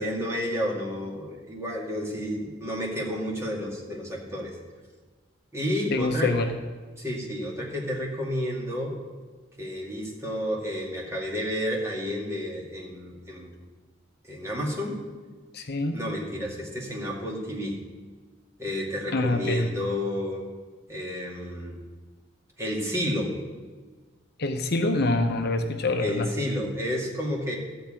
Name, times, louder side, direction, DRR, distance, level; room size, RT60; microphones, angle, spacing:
voice 1, 0.0-4.5 5.5-6.3 7.0-8.9 9.6-13.5 14.3-15.0 15.9-17.8 18.6-20.4 20.9-21.8 22.6-23.3 26.0-27.6, equal, 15° right, -3 dB, 2.1 m, -31 dB
voice 2, 5.9-6.6 15.5-16.0 19.1-19.7 24.4-26.3, left 2 dB, 55° left, 6 dB, 0.8 m, -25 dB
13.5 x 4.6 x 8.8 m, 1.4 s
head